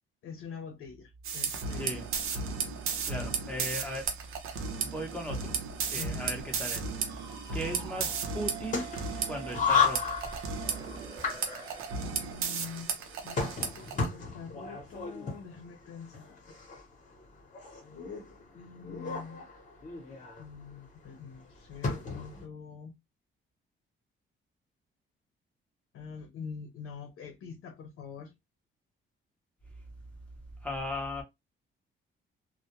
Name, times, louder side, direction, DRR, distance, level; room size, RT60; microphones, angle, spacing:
voice 1, 0.2-2.1 5.9-6.2 12.0-16.4 18.5-19.4 20.4-22.9 25.9-28.3, left 6 dB, 80° left, 0.7 m, -45 dB
sound 1, 1.2-14.1, right 5 dB, 85° right, 0.6 m, -35 dB
voice 2, 1.7-2.1 3.1-4.1 4.8-5.6 5.9-7.2 7.5-8.9 9.3-10.2 30.6-31.2, equal, 5° left, 0.7 m, -37 dB
sound 2, 7.1-12.3, right 8 dB, 20° right, 0.4 m, -46 dB
sound 3, 8.0-22.4, left 5 dB, 40° left, 0.8 m, -35 dB
2.2 x 2.1 x 2.8 m
cardioid pair, 165°, 21 cm